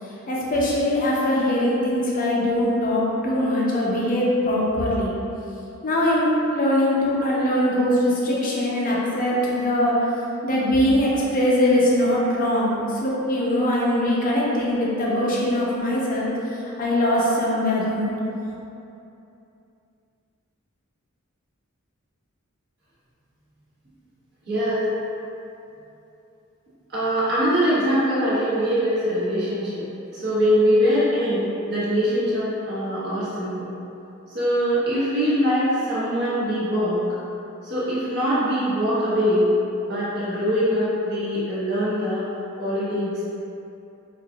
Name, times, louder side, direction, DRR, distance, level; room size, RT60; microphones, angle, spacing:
voice 1, 0.3-5.1 5.8-10.0 10.4-16.3 16.8-18.1, left 1 dB, 40° left, -5 dB, 0.6 m, -22 dB
voice 2, 24.4-24.9 26.9-33.7 34.3-37.0 37.6-39.5 39.9-42.2 42.6-43.2, equal, 50° right, -11 dB, 1.3 m, -23 dB
4.9 x 2.6 x 2.3 m, 2.8 s
head